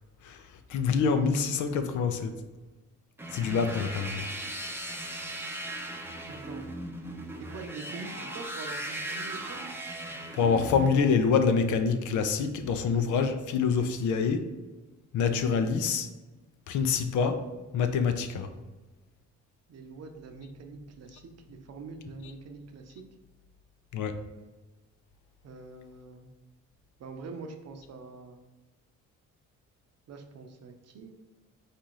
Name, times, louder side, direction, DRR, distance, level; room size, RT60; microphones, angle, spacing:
voice 1, 0.2-2.4 3.3-4.3 10.3-14.5 15.1-16.1 16.7-17.5 17.7-18.5 23.9-24.2, left 5 dB, 75° left, 8 dB, 0.6 m, -26 dB
sound 1, 3.2-10.9, right 1 dB, 10° right, 0.6 m, -38 dB
voice 2, 6.3-6.6 7.4-9.6 19.7-23.1 25.4-26.3 27.0-28.4 30.1-31.2, right 4 dB, 55° right, 5 dB, 0.7 m, -44 dB
4.2 x 2.5 x 4.6 m, 1.2 s
cardioid pair, 90°, 30 cm